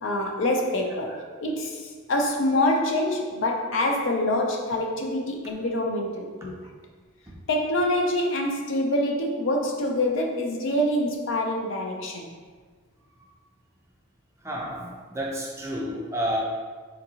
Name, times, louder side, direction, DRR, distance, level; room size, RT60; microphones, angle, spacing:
voice 1, 0.0-6.5 7.5-12.3, left 1 dB, 60° left, 2 dB, 0.4 m, -26 dB
voice 2, 14.4-16.4, equal, 15° right, -3 dB, 0.4 m, -30 dB
3.8 x 2.7 x 2.7 m, 1.5 s
head